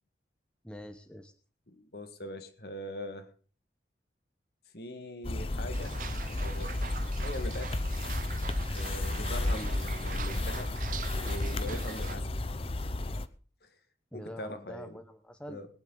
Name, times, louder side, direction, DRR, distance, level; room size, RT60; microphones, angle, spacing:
voice 1, 0.6-1.3 9.5-9.7 14.1-15.6, equal, 5° left, 1.1 m, -45 dB
voice 2, 1.7-3.3 4.7-6.0 6.3-7.8 8.7-10.7 11.1-12.3 13.1-13.2 13.6-13.7 14.1-15.0 15.5-15.7, left 1 dB, 55° left, 1.8 m, -42 dB
sound 1, 5.2-13.3, left 2 dB, 30° left, 0.7 m, -33 dB
sound 2, 5.7-12.2, right 7 dB, 45° right, 0.5 m, -44 dB
21.0 x 9.9 x 3.9 m
head